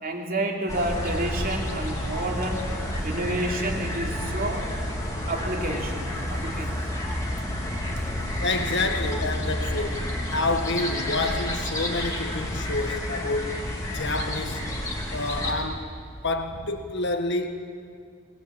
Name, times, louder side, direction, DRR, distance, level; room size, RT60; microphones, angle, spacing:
voice 1, 0.0-2.6 3.0-4.7 5.3-6.8, right 1 dB, 40° right, 3.1 m, -29 dB
sound 1, 0.7-15.5, left 1 dB, 15° left, 3.1 m, -30 dB
voice 2, 8.4-13.6 13.9-14.6 15.1-15.9 16.2-17.5, left 2 dB, 55° left, 1.8 m, -28 dB
22.0 x 20.0 x 8.8 m
head